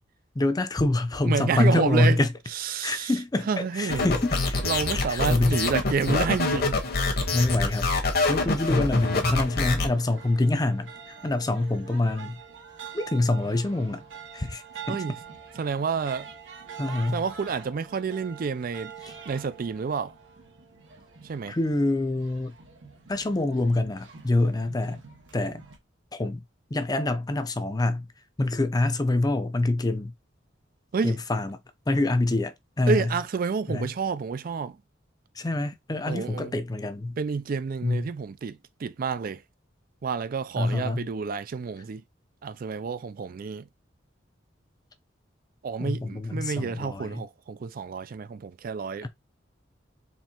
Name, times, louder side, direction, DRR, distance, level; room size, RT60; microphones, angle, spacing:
voice 1, 0.3-2.3 2.8-4.8 5.1-5.6 7.3-7.9 8.3-12.4 12.9-14.0 14.3-15.0 16.8-17.2 19.0-19.1 21.5-22.5 23.1-25.0 25.3-25.6 26.1-26.4 26.7-28.1 28.4-30.1 31.0-31.6 31.9-33.1 33.7-33.9 35.3-37.2 37.8-38.1 40.6-41.1 45.8-47.2 49.0-49.1, left 2 dB, 20° left, 0.5 m, -26 dB
voice 2, 1.2-2.2 2.5-3.1 3.5-4.1 4.6-6.8 14.9-15.1 15.6-16.3 17.1-18.9 19.3-20.1 21.2-21.6 30.9-31.2 32.9-34.8 36.1-36.5 37.2-39.4 40.0-42.0 42.4-43.7 45.6-49.1, right 5 dB, 50° right, 0.4 m, -29 dB
sound 1, 3.9-9.9, left 3 dB, 55° left, 1.1 m, -25 dB
sound 2, 8.6-25.8, right 7 dB, 85° right, 1.4 m, -45 dB
4.5 x 3.2 x 2.9 m
head